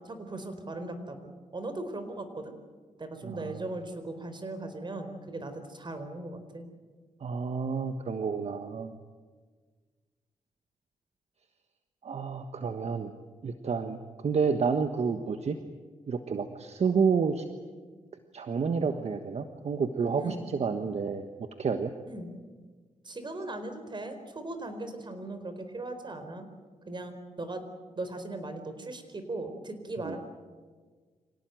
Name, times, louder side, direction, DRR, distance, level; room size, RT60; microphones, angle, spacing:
voice 1, 0.0-2.5 3.0-6.7 20.2-20.5 22.1-22.3 23.0-26.5 26.9-27.6 27.9-30.2, right 2 dB, 40° right, 8 dB, 4.4 m, -38 dB
voice 2, 3.2-3.5 7.2-8.9 12.0-13.2 13.4-15.6 16.1-17.5 18.3-21.2 21.6-21.9 30.0-30.2, right 5 dB, 60° right, 8 dB, 1.4 m, -29 dB
26.0 x 18.0 x 9.2 m, 1.5 s
cardioid pair, 80°, 12 cm